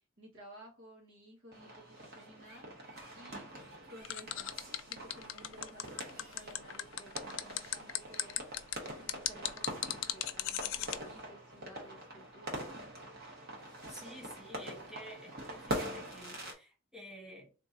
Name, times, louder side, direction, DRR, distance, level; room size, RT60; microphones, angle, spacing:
voice 1, 0.2-2.8 3.1-3.5 3.9-8.5 9.0-12.7, right 1 dB, 70° right, 1.6 m, -55 dB
sound 1, 1.5-16.5, right 1 dB, 50° right, 1.3 m, -44 dB
sound 2, 4.0-11.0, left 13 dB, 75° left, 0.4 m, -36 dB
voice 2, 13.9-17.5, equal, 5° right, 0.7 m, -51 dB
3.6 x 2.9 x 2.7 m
head